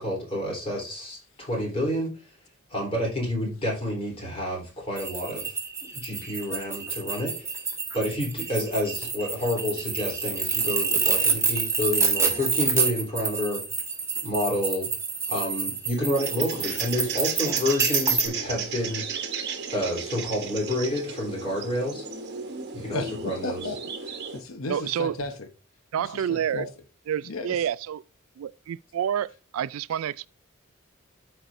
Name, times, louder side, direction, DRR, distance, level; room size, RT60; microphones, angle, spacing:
voice 1, 0.0-2.3 2.7-5.6 5.9-7.3 7.9-13.6 14.2-14.9 15.3-19.0 19.7-22.1 22.7-23.6, left 1 dB, 25° left, 3.5 m, -29 dB
sound 1, 5.0-18.3, right 4 dB, 15° right, 1.5 m, -27 dB
sound 2, 16.2-24.4, right 6 dB, 55° right, 1.1 m, -34 dB
voice 2, 23.4-25.5 26.0-26.7 27.2-27.6, left 3 dB, 75° left, 0.9 m, -35 dB
voice 3, 24.7-25.1 25.9-26.6 27.1-28.0 28.4-30.3, right 9 dB, 80° right, 0.3 m, -28 dB
13.5 x 4.6 x 2.6 m
head